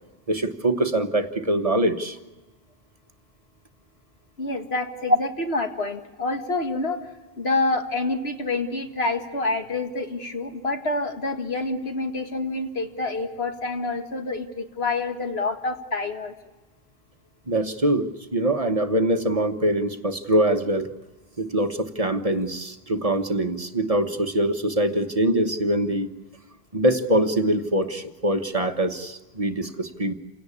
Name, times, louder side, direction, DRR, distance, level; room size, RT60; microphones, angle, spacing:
voice 1, 0.3-2.2 17.5-20.9 21.4-26.1 26.7-30.1, right 1 dB, 35° right, 8 dB, 1.3 m, -23 dB
voice 2, 4.4-7.0 7.4-16.3, left 2 dB, 80° left, 6 dB, 2.2 m, -27 dB
28.5 x 17.5 x 8.7 m, 1.2 s
omnidirectional pair, 1.0 m